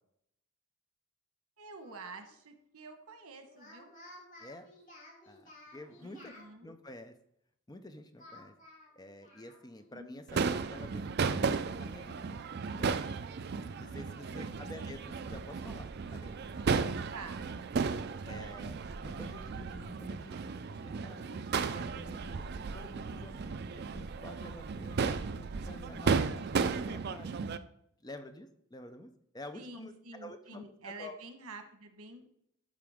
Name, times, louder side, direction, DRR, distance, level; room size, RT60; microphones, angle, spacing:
voice 1, 1.6-3.9 5.9-6.7 9.9-10.1 14.3-14.8 17.1-17.6 29.5-32.2, right 3 dB, 90° right, 6 dB, 1.2 m, -48 dB
Speech, 1.8-2.4 3.4-6.5 8.2-9.9 10.2-10.3 10.8-12.2, left 1 dB, 40° left, 2.6 m, -55 dB
voice 2, 5.3-6.3 6.6-7.1 7.7-8.5 9.0-12.2 12.7-13.0 13.8-16.3 18.3-18.8 19.0-20.4 20.7-22.4 22.7-27.3 28.0-31.2, left 1 dB, 20° left, 8 dB, 0.6 m, -49 dB
Crowd / Fireworks, 10.3-27.6, right 5 dB, 50° right, 0.4 m, -34 dB
12.5 x 5.0 x 3.6 m, 0.74 s
head